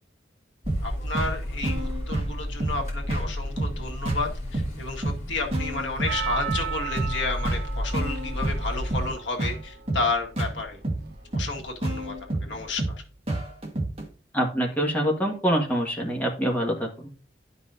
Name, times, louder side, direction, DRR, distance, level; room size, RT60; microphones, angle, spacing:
sound 1, 0.6-9.1, left 1 dB, 40° left, 2.9 m, -33 dB
sound 2, 0.7-14.1, right 2 dB, 35° right, 1.5 m, -31 dB
voice 1, 0.8-10.8 11.3-13.0, left 3 dB, 80° left, 2 dB, 1.7 m, -32 dB
Percussion, 6.1-10.4 11.1-11.2, right 9 dB, 60° right, 0.9 m, -36 dB
voice 2, 14.3-17.1, equal, 10° left, -1 dB, 1.6 m, -25 dB
11.5 x 5.4 x 2.7 m, 0.38 s
head